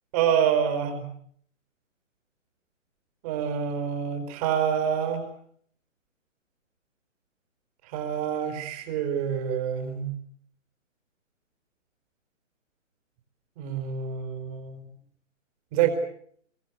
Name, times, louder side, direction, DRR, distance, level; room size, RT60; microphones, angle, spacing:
voice 1, 0.1-1.1 3.2-5.2 7.9-10.1 13.6-14.8 15.7-15.9, right 8 dB, 30° right, 7 dB, 4.7 m, -27 dB
26.0 x 23.5 x 8.1 m, 0.64 s
figure-of-eight pair, 140°, 39 cm